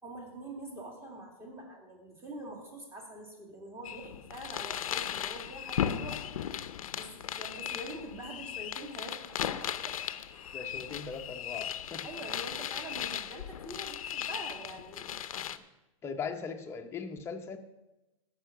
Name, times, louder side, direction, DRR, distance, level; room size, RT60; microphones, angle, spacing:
voice 1, 0.0-6.2 6.9-10.0 10.3-10.7 12.0-15.1, right 1 dB, 15° right, 0 dB, 2.4 m, -45 dB
sound 1, 3.9-15.6, left 10 dB, 90° left, 0.6 m, -37 dB
voice 2, 10.5-12.1 15.5-15.6 16.0-17.6, left 5 dB, 15° left, 3 dB, 0.8 m, -40 dB
14.0 x 5.7 x 5.9 m, 1.0 s
hypercardioid pair, 145°, 17 cm